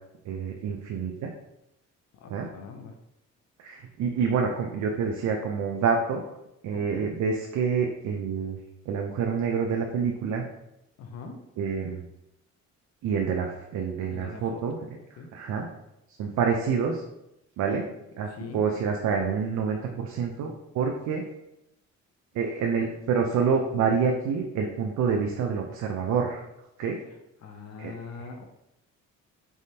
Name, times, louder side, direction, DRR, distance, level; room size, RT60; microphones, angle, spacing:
voice 1, 0.3-1.3 2.3-2.5 3.6-6.2 6.6-8.6 8.9-10.4 11.6-12.1 13.0-14.8 15.1-15.7 16.2-17.0 17.6-17.8 18.2-21.2 22.3-26.4 26.8-27.0 27.8-27.9, right 6 dB, 70° right, 2 dB, 0.6 m, -27 dB
voice 2, 2.1-2.9 6.7-7.0 11.0-11.4 14.1-14.8 15.2-15.3 17.7-17.8 18.3-18.6 27.4-28.5, left 4 dB, 55° left, 4 dB, 0.7 m, -42 dB
4.2 x 3.5 x 2.8 m, 0.86 s
cardioid pair, 90°, 30 cm